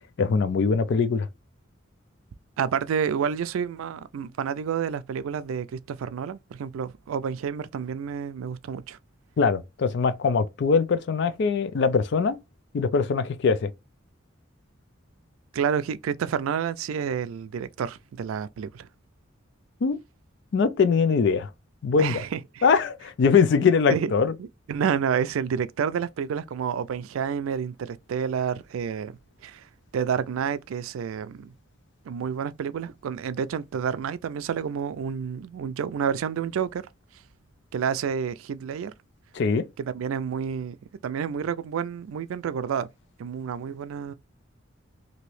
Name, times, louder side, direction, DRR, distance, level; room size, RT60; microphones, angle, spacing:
voice 1, 0.2-1.3 9.4-12.4 12.7-13.7 19.8-20.0 20.5-21.5 21.8-22.2 22.6-24.3 39.3-39.7, left 5 dB, 55° left, 0.4 m, -22 dB
voice 2, 2.6-9.0 15.5-18.9 22.0-22.7 23.9-24.1 24.4-29.1 29.4-29.6 29.9-31.5 32.1-36.8 37.7-38.9 39.8-40.8 41.0-42.9 43.2-44.1, right 7 dB, 90° right, 0.3 m, -29 dB
2.9 x 2.6 x 3.1 m
head